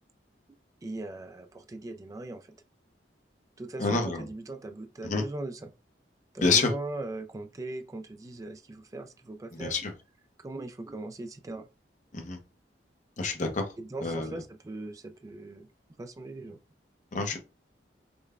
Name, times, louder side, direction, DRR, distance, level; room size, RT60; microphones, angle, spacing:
voice 1, 0.8-2.5 3.6-5.7 6.3-9.8 10.4-11.7 13.8-15.7 16.0-16.6, right 2 dB, 20° right, 0.3 m, -39 dB
voice 2, 3.8-4.3 5.0-5.2 6.4-6.7 9.5-9.9 12.1-12.4 13.2-13.7 14.0-14.4 17.1-17.4, left 4 dB, 45° left, 0.7 m, -28 dB
5.1 x 2.2 x 2.3 m
head